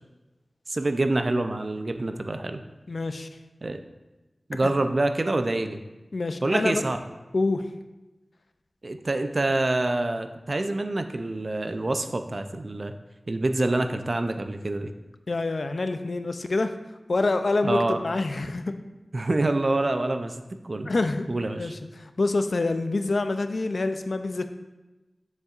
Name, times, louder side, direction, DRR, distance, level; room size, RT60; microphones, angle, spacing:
voice 1, 0.7-2.6 3.6-3.8 4.5-5.8 6.4-7.0 8.8-12.9 13.3-14.9 17.6-18.0 19.1-20.9 21.3-21.7, right 2 dB, 50° right, 8 dB, 0.4 m, -26 dB
voice 2, 2.9-3.3 4.6-4.7 6.1-6.8 7.3-7.7 15.3-16.7 17.1-18.7 20.9-21.2 21.6-24.4, left 3 dB, 70° left, 8 dB, 0.4 m, -26 dB
7.2 x 6.5 x 2.5 m, 1.1 s
wide cardioid pair, 75°, 0 cm